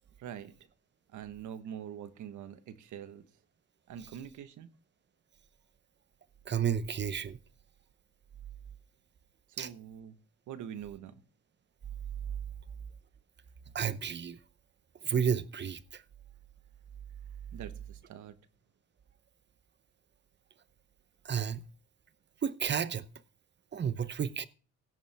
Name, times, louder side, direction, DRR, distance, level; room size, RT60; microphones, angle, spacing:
voice 1, 0.2-0.5 1.1-3.2 3.9-4.7 9.5-10.2 10.5-11.2 17.5-18.4, right 9 dB, 75° right, 1.3 m, -44 dB
voice 2, 6.5-7.4 9.6-9.7 13.7-14.4 15.0-16.0 21.2-21.6 22.4-23.1 23.7-24.5, right 7 dB, 35° right, 0.8 m, -31 dB
17.5 x 7.1 x 3.5 m
cardioid pair, 90°, 30 cm